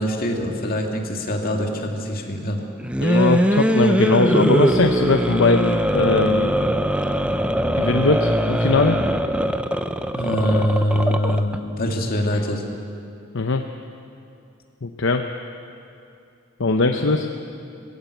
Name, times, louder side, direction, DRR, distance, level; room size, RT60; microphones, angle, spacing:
voice 1, 0.0-2.6 10.1-12.6 17.1-17.3, equal, 45° left, 2 dB, 2.4 m, -23 dB
sound 1, 2.8-11.6, right 1 dB, 5° right, 0.7 m, -21 dB
voice 2, 3.0-6.5 7.8-9.0 13.3-13.6 14.8-15.2 16.6-17.3, left 3 dB, 65° left, 5 dB, 0.8 m, -20 dB
21.0 x 16.5 x 8.1 m, 2.6 s
head